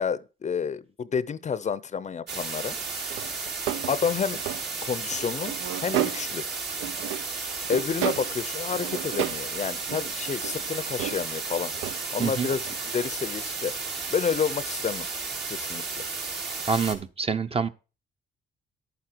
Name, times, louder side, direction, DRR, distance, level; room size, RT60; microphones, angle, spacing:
voice 1, 0.0-2.8 3.9-4.4 4.9-5.6 5.8-6.4 7.7-11.7 12.1-13.8 14.1-15.1 15.5-15.8, left 6 dB, 35° left, 0.5 m, -29 dB
sound 1, 2.3-16.9, right 4 dB, 60° right, 2.6 m, -33 dB
sound 2, 3.1-4.7 5.1-6.4 6.7-7.4 7.7-8.4 8.7-9.5 9.8-11.3 11.7-12.0 12.4-12.8 13.4-13.5 16.0-16.1, right 11 dB, 85° right, 0.6 m, -33 dB
voice 2, 16.7-17.7, right 5 dB, 30° right, 0.8 m, -26 dB
11.5 x 8.7 x 4.5 m
cardioid pair, 90°, 20 cm